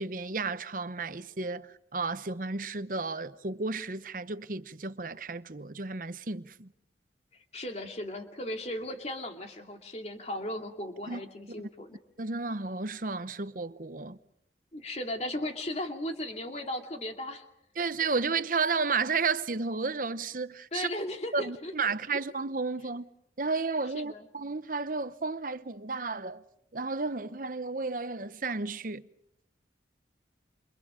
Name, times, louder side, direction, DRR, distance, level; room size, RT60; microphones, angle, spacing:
voice 1, 0.0-6.7 11.1-11.2 12.2-14.2 17.8-20.9 21.3-23.1 23.4-26.4 26.7-29.0, right 4 dB, 50° right, 0.9 m, -32 dB
voice 2, 7.5-12.0 14.7-17.4 20.7-22.2 23.9-24.3, left 1 dB, 35° left, 2.5 m, -36 dB
30.0 x 28.0 x 5.1 m
head